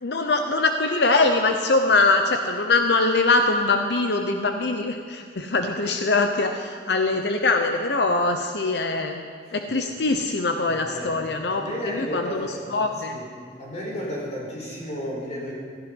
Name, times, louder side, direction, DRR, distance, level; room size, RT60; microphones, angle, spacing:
voice 1, 0.0-13.2, left 3 dB, 70° left, 5 dB, 0.9 m, -23 dB
voice 2, 10.7-11.1 11.5-12.6 13.1-13.3 13.6-15.5, equal, 40° left, -3 dB, 4.7 m, -33 dB
16.0 x 14.0 x 5.4 m, 2.1 s
head